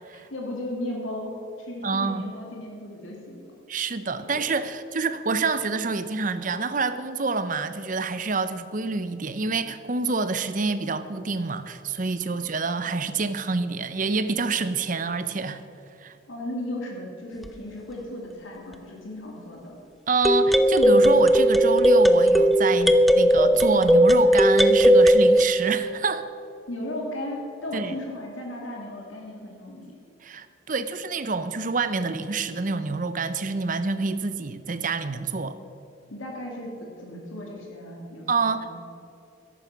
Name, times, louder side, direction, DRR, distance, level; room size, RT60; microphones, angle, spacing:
voice 1, 0.1-3.5 4.2-4.4 16.3-19.8 26.7-29.9 36.1-38.8, left 1 dB, 85° left, -1 dB, 2.7 m, -36 dB
voice 2, 1.8-2.3 3.7-15.6 16.0-16.1 20.1-26.3 27.7-27.9 30.2-35.6 38.3-38.8, right 4 dB, 40° right, 12 dB, 0.7 m, -27 dB
sound 1, 17.5-17.6 20.2-25.4, right 1 dB, ahead, 0.4 m, -17 dB
13.5 x 11.0 x 5.9 m, 2.6 s
head